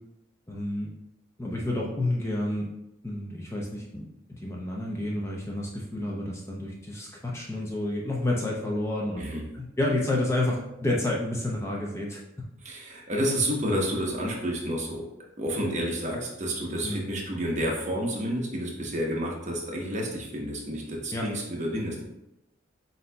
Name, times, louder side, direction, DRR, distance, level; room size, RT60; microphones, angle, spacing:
voice 1, 0.5-0.9 1.4-2.7 3.0-9.3 9.5-12.2 16.8-17.1 21.1-21.3, left 1 dB, 15° left, -2 dB, 0.5 m, -30 dB
voice 2, 12.6-15.0 15.4-22.0, equal, 35° right, -1 dB, 0.8 m, -30 dB
7.6 x 2.7 x 2.2 m, 0.88 s
head